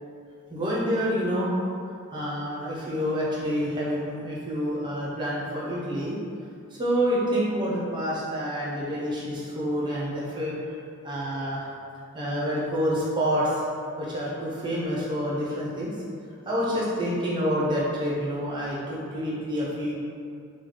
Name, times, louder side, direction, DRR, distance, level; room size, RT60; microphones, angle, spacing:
voice 1, 0.5-1.5 2.1-6.2 6.7-10.8 11.0-11.7 12.1-13.6 14.0-16.0 16.4-20.0, equal, 20° right, -6 dB, 0.6 m, -28 dB
3.2 x 2.3 x 3.7 m, 2.5 s
head